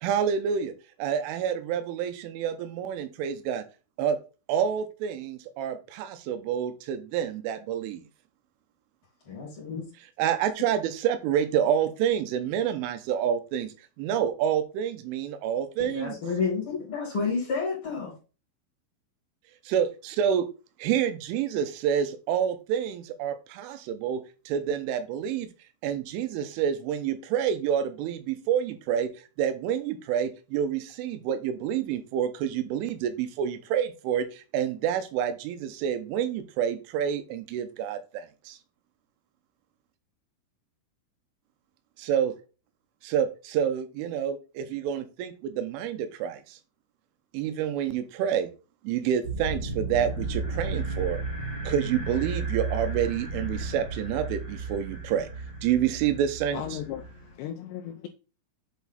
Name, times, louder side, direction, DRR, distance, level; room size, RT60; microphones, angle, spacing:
voice 1, 0.0-0.7 1.0-3.6 4.0-4.2 4.5-8.0 10.2-16.2 19.7-20.5 20.8-25.5 25.8-29.1 29.4-38.6 42.0-42.3 43.0-46.6 47.3-48.5 48.8-51.2 51.6-55.3 55.6-56.8, right 9 dB, 85° right, 3.3 m, -28 dB
voice 2, 9.3-9.8 15.8-18.1, left 5 dB, 35° left, 3.1 m, -30 dB
sound 1, 49.2-57.3, right 3 dB, 20° right, 1.8 m, -33 dB
voice 3, 56.5-58.1, left 10 dB, 90° left, 2.5 m, -36 dB
8.3 x 4.6 x 3.9 m
omnidirectional pair, 5.6 m